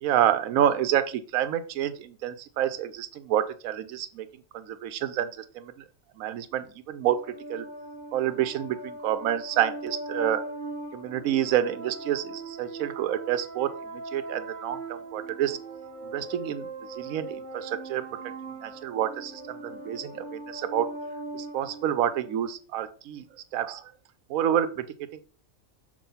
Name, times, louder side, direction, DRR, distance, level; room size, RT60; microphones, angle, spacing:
voice 1, 0.0-4.3 4.5-5.9 6.2-7.2 7.5-7.7 8.1-10.5 10.9-15.6 16.0-18.1 18.6-20.9 21.3-23.2 23.5-23.9 24.3-25.2, right 11 dB, 85° right, 12 dB, 1.0 m, -28 dB
sound 1, 7.0-22.5, right 2 dB, 40° right, 1.0 m, -40 dB
7.3 x 2.7 x 5.4 m, 0.40 s
omnidirectional pair, 1.4 m